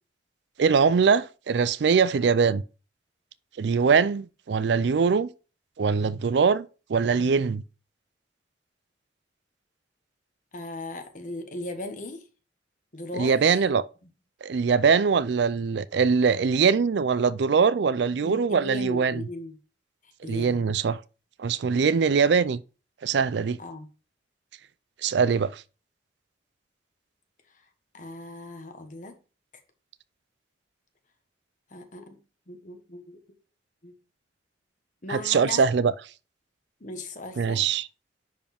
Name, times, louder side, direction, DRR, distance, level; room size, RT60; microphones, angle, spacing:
voice 1, 0.6-2.6 3.6-5.3 5.8-7.6 13.1-13.9 14.4-19.3 20.3-21.0 21.4-22.6 23.0-23.6 25.0-25.6 35.1-35.9 37.4-37.9, right 5 dB, 65° right, 0.4 m, -22 dB
voice 2, 10.5-12.2 12.9-13.5 18.2-19.6 20.2-20.6 23.6-23.9 27.9-29.2 31.7-32.2 32.5-33.2 33.8-33.9 35.0-35.7 36.8-37.7, left 2 dB, 45° left, 1.3 m, -38 dB
10.0 x 4.7 x 3.5 m
head